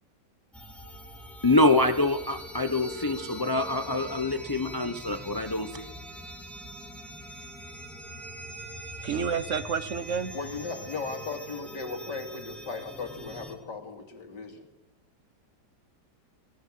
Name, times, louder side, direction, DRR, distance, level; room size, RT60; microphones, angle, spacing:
sound 1, 0.5-13.5, right 1 dB, ahead, 2.5 m, -43 dB
voice 1, 1.4-5.9, left 2 dB, 20° left, 9 dB, 0.6 m, -25 dB
voice 2, 9.0-10.3, right 6 dB, 50° right, 13 dB, 1.1 m, -29 dB
voice 3, 10.3-14.7, left 4 dB, 75° left, 5 dB, 3.2 m, -37 dB
22.5 x 17.5 x 7.7 m, 0.97 s
omnidirectional pair, 1.9 m